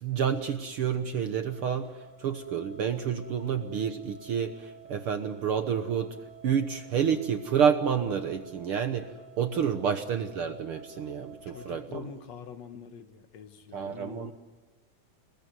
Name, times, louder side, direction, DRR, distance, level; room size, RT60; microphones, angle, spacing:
voice 1, 0.0-6.2 6.4-9.1 9.4-12.1 13.7-14.3, right 7 dB, 60° right, 1.6 m, -29 dB
sound 1, 1.5-11.7, right 3 dB, 30° left, 8.0 m, -51 dB
voice 2, 9.6-10.0 11.5-14.3, left 8 dB, 65° left, 2.3 m, -45 dB
28.0 x 21.0 x 9.4 m
omnidirectional pair, 3.5 m